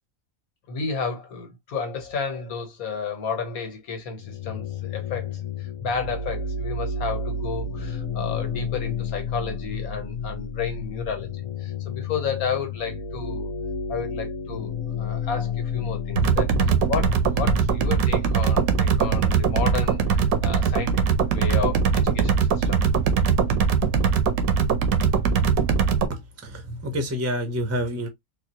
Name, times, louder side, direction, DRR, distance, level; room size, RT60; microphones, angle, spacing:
voice 1, 0.7-13.5 13.9-14.7 15.0-21.0 21.3-22.8, left 5 dB, 90° left, 1.6 m, -32 dB
sound 1, 4.2-17.9, left 4 dB, 40° left, 0.5 m, -31 dB
sound 2, 16.2-26.1, right 6 dB, 80° right, 1.2 m, -21 dB
voice 2, 26.1-28.1, equal, 15° right, 0.5 m, -28 dB
4.1 x 2.4 x 2.8 m
omnidirectional pair, 1.5 m